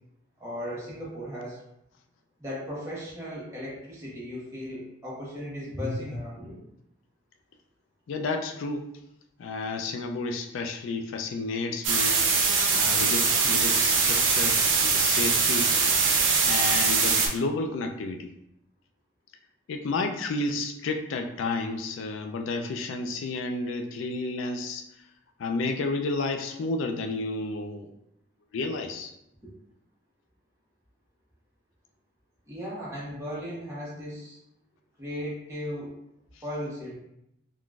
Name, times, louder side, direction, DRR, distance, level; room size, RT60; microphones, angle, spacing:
voice 1, 0.4-1.6 2.4-6.6 29.4-29.5 32.5-34.4 35.0-35.9 36.4-36.9, equal, 15° right, -8 dB, 1.0 m, -36 dB
voice 2, 8.1-8.9 9.4-12.2 12.7-15.7 16.4-18.3 19.7-24.8 25.4-27.9 28.5-29.1, left 3 dB, 90° left, 5 dB, 0.3 m, -31 dB
sound 1, 11.8-17.3, right 5 dB, 85° right, 0.6 m, -22 dB
3.7 x 2.5 x 2.3 m, 0.80 s
head